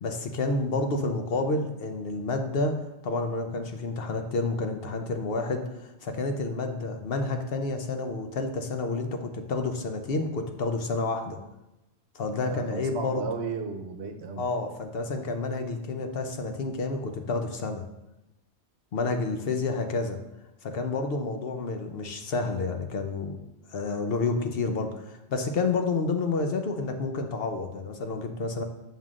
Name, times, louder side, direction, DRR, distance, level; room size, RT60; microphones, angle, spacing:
voice 1, 0.0-11.4 12.1-13.3 14.4-17.8 18.9-20.2 20.6-23.4 23.7-28.6, left 3 dB, 65° left, 6 dB, 0.9 m, -29 dB
voice 2, 12.4-14.4, right 5 dB, 75° right, 7 dB, 0.9 m, -34 dB
9.1 x 5.6 x 2.4 m, 0.94 s
omnidirectional pair, 1.1 m